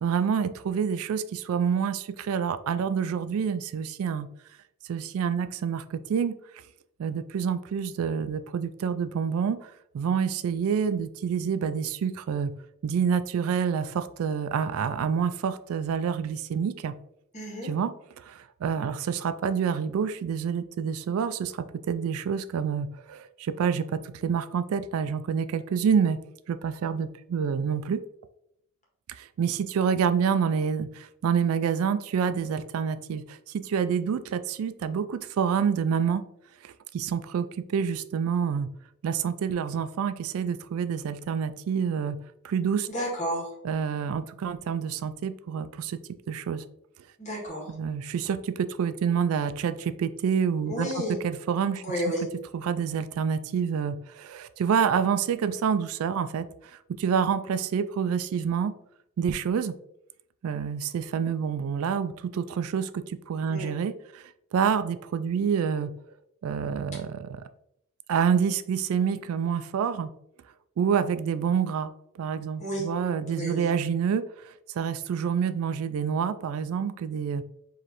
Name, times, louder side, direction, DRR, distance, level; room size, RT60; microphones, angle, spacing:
voice 1, 0.0-4.3 4.9-6.4 7.0-12.5 12.8-16.9 17.6-17.9 18.2-26.2 26.5-28.0 29.1-36.2 36.6-38.7 39.0-42.2 42.4-42.9 43.6-46.0 46.3-46.6 47.7-50.9 51.2-51.8 52.5-56.5 57.0-58.7 59.2-59.7 60.4-64.2 64.5-65.9 66.4-67.4 68.1-70.1 70.8-71.9 72.2-77.4, right 7 dB, 70° right, 11 dB, 0.3 m, -27 dB
voice 2, 17.3-17.7 42.9-43.5 47.2-47.7 50.6-51.2 51.8-52.3 63.5-63.7 72.6-72.9 73.4-73.7, equal, 35° left, -3 dB, 1.7 m, -31 dB
4.7 x 3.1 x 3.0 m, 0.75 s
head